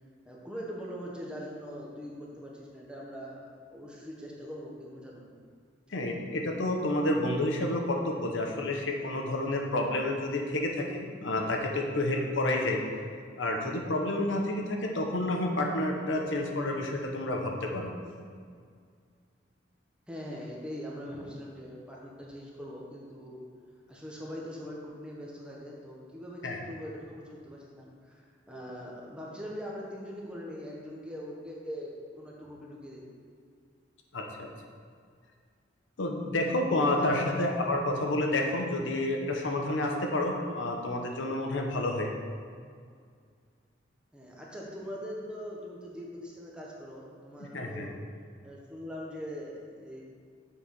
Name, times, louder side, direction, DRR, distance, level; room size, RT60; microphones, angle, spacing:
voice 1, 0.2-5.3 20.1-23.4 23.9-33.0 37.0-37.3 44.1-48.0 48.4-50.0, equal, 5° right, -4 dB, 1.2 m, -42 dB
voice 2, 5.9-12.8 13.4-17.9 26.4-26.6 34.1-34.5 36.0-42.1 47.4-47.9, left 1 dB, 80° left, 2 dB, 0.9 m, -29 dB
7.1 x 4.8 x 5.4 m, 2.1 s
head